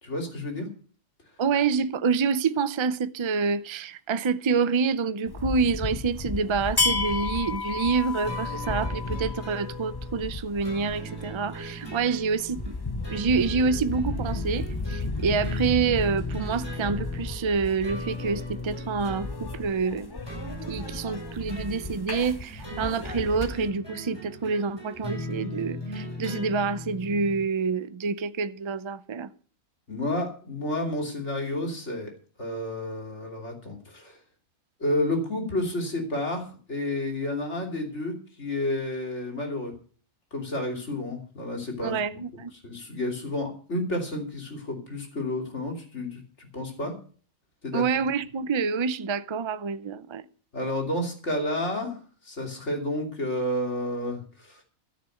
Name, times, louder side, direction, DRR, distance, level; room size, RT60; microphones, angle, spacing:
voice 1, 0.0-0.7 29.9-32.1 32.4-34.2 34.8-39.7 40.3-42.2 42.5-47.0 47.6-47.8 50.5-52.0 52.2-54.6, left 1 dB, 50° left, 3.2 m, -30 dB
voice 2, 1.4-12.8 13.1-20.1 20.7-29.3 41.8-42.5 47.7-50.2, right 5 dB, 45° right, 0.3 m, -27 dB
sound 1, 5.3-23.7, left 3 dB, 35° left, 0.4 m, -33 dB
sound 2, 8.2-27.4, left 1 dB, 15° left, 5.5 m, -38 dB
13.5 x 6.8 x 7.8 m
omnidirectional pair, 1.5 m